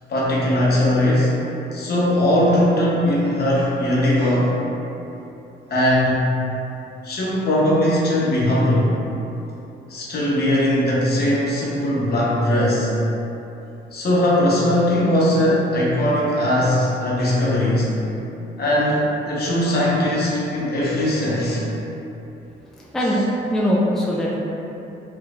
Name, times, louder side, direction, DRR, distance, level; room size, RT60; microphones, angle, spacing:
voice 1, 0.1-1.3 1.7-4.5 5.7-6.3 7.0-8.9 9.9-12.9 13.9-17.9 18.6-21.7, left 1 dB, 55° left, -6 dB, 0.8 m, -19 dB
voice 2, 22.7-24.4, equal, ahead, -4 dB, 0.3 m, -21 dB
3.1 x 3.0 x 2.4 m, 2.9 s
cardioid pair, 90°, 20 cm